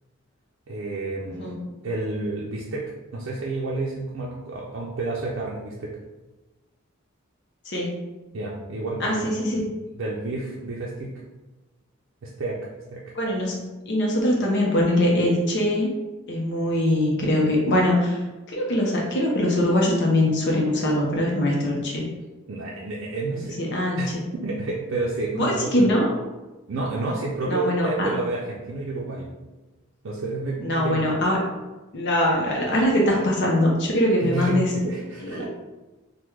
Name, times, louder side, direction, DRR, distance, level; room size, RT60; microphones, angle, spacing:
voice 1, 0.7-1.5 1.8-5.9 8.3-9.5 10.0-11.1 12.2-12.6 12.9-13.0 22.5-23.6 24.0-25.9 26.7-29.3 30.0-31.0 34.2-35.4, right 2 dB, 65° right, -4 dB, 0.5 m, -30 dB
voice 2, 7.7-8.0 9.0-9.6 13.2-15.9 16.3-18.2 18.5-22.1 23.6-24.0 25.3-26.1 27.5-28.1 30.6-31.4 31.9-34.7 35.2-35.4, left 1 dB, 60° left, -2 dB, 0.6 m, -22 dB
3.4 x 2.1 x 3.0 m, 1.1 s
head